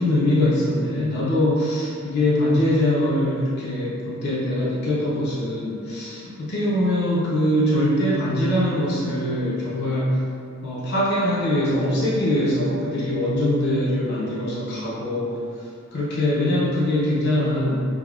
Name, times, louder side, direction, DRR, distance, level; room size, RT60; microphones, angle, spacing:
voice 1, 0.0-10.2 10.6-15.3 15.9-17.9, left 1 dB, 50° left, -7 dB, 0.5 m, -22 dB
3.5 x 2.0 x 2.3 m, 2.3 s
head